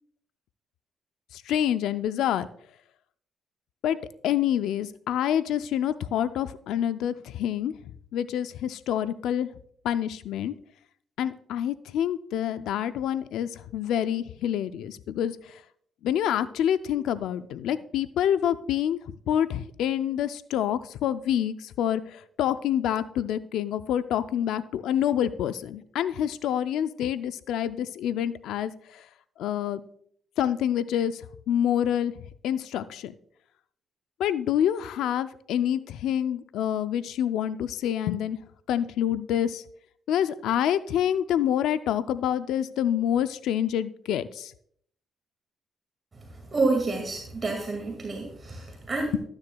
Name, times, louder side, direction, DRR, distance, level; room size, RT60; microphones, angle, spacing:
voice 1, 1.3-2.5 3.8-4.0 4.2-7.7 8.1-9.5 9.8-10.5 11.2-15.6 16.0-19.0 19.3-29.1 29.4-29.8 30.4-32.1 32.4-33.1 34.2-38.4 38.7-39.6 40.1-44.5, left 10 dB, 85° left, 13 dB, 0.3 m, -27 dB
voice 2, 46.1-49.2, right 3 dB, 35° right, 2 dB, 2.0 m, -29 dB
12.5 x 9.5 x 2.2 m, 0.65 s
cardioid pair, 90°, 0 cm